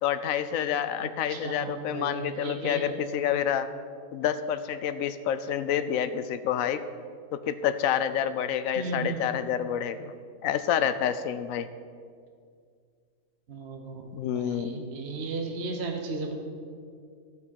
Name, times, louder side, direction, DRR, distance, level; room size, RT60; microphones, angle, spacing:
voice 1, 0.0-3.7 4.1-6.8 7.3-10.1 10.4-11.7 14.1-14.9, left 9 dB, 75° left, 12 dB, 1.0 m, -28 dB
voice 2, 1.0-2.9 8.8-9.2 13.5-16.3, right 3 dB, 55° right, 3 dB, 1.1 m, -35 dB
12.5 x 8.5 x 4.5 m, 2.1 s
omnidirectional pair, 1.5 m